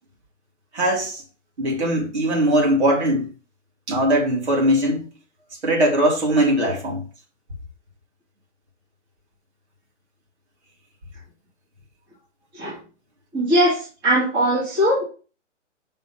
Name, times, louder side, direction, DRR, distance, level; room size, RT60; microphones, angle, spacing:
voice 1, 0.7-1.2 1.6-3.3 3.9-5.1 5.6-7.0, right 1 dB, 60° right, 3.5 m, -20 dB
voice 2, 13.3-15.0, equal, 15° right, 2.2 m, -20 dB
5.6 x 4.1 x 5.7 m
hypercardioid pair, 170°, 37 cm